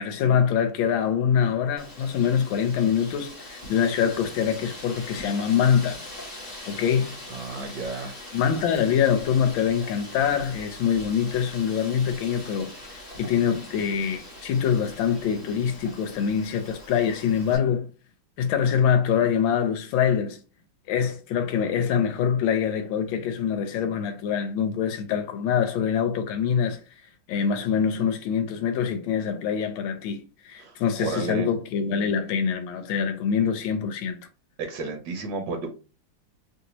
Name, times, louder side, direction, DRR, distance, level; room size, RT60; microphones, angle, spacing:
voice 1, 0.0-6.1 6.7-7.2 8.3-17.9 18.4-20.4 20.9-26.8 27.3-34.2, left 7 dB, 90° left, 1.4 m, -24 dB
Wind, 1.8-17.6, left 1 dB, 30° left, 1.5 m, -42 dB
voice 2, 7.3-8.2 30.6-31.5 34.6-35.7, right 3 dB, 70° right, 1.3 m, -32 dB
3.2 x 2.6 x 2.9 m
omnidirectional pair, 2.1 m